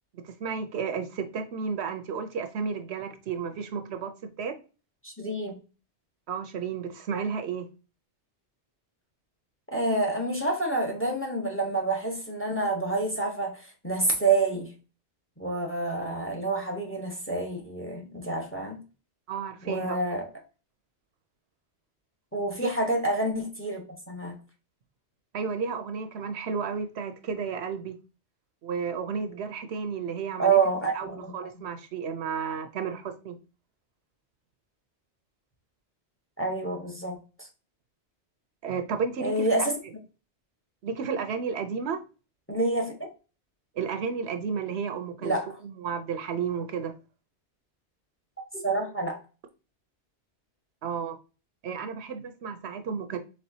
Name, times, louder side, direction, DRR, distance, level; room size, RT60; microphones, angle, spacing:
voice 1, 0.1-4.1 4.4-4.6 6.3-7.7 19.3-20.0 22.6-22.7 25.3-28.0 28.6-30.6 30.9-33.4 38.6-39.5 40.8-42.0 43.8-45.3 45.6-46.9 50.8-51.2 51.6-53.2, right 6 dB, 70° right, 0.8 m, -32 dB
voice 2, 5.0-5.5 9.7-14.7 15.4-18.8 19.6-20.3 22.3-23.8 24.1-24.3 30.4-31.3 36.4-37.5 39.2-39.7 42.5-42.9 45.2-45.5 48.5-49.2, right 3 dB, 10° left, 0.9 m, -28 dB
4.2 x 3.8 x 2.7 m
omnidirectional pair, 1.2 m